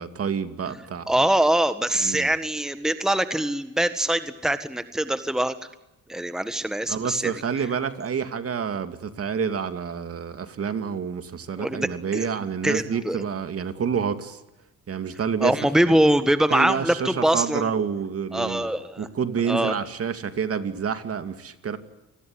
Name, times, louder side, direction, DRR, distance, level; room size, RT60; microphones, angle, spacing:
voice 1, 0.0-1.1 2.0-2.3 6.9-14.4 14.9-15.5 15.9-16.0 16.5-18.7 19.0-21.8, right 7 dB, 50° right, 9 dB, 2.7 m, -28 dB
voice 2, 1.1-5.6 6.1-7.3 11.6-12.3 12.6-13.2 15.4-17.6 18.3-19.1 19.5-19.7, right 1 dB, ahead, 10 dB, 1.6 m, -23 dB
29.0 x 20.5 x 9.8 m, 0.98 s
cardioid pair, 90°, 30 cm